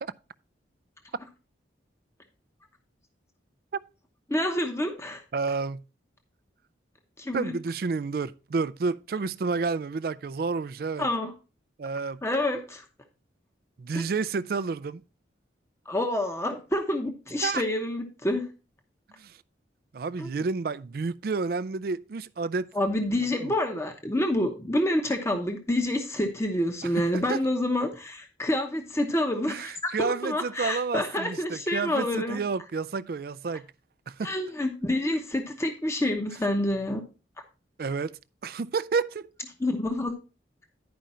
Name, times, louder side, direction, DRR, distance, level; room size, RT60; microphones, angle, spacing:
voice 1, 4.3-5.2 7.2-7.5 11.0-11.3 12.2-12.8 13.9-14.1 15.9-18.5 20.2-20.3 22.7-32.4 34.2-37.0 39.6-40.2, left 1 dB, 15° left, 0.9 m, -28 dB
voice 2, 5.3-5.8 7.3-11.1 11.8-12.2 13.8-15.0 17.4-17.6 19.2-19.4 19.9-22.7 23.4-23.5 26.8-27.4 29.5-33.7 34.1-34.3 37.8-39.3, right 4 dB, 50° right, 0.4 m, -30 dB
10.5 x 5.1 x 4.3 m
head